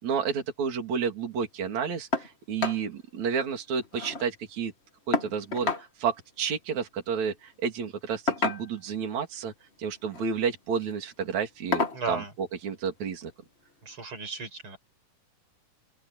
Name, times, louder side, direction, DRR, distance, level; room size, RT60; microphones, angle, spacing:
voice 1, 0.0-4.7 5.1-9.5 9.8-13.3, right 6 dB, 60° right, 4.4 m, -31 dB
sound 1, 2.1-2.3 2.6-2.8 3.2-3.3 3.6-4.3 5.1-5.9 7.1-7.3 8.3-8.9 10.0-10.3 10.7-10.9 11.7-12.0 13.3-13.4 13.9-14.0, left 3 dB, 30° left, 1.3 m, -30 dB
voice 2, 11.9-12.3 13.8-14.8, right 3 dB, 40° right, 5.9 m, -35 dB
open air
omnidirectional pair, 3.8 m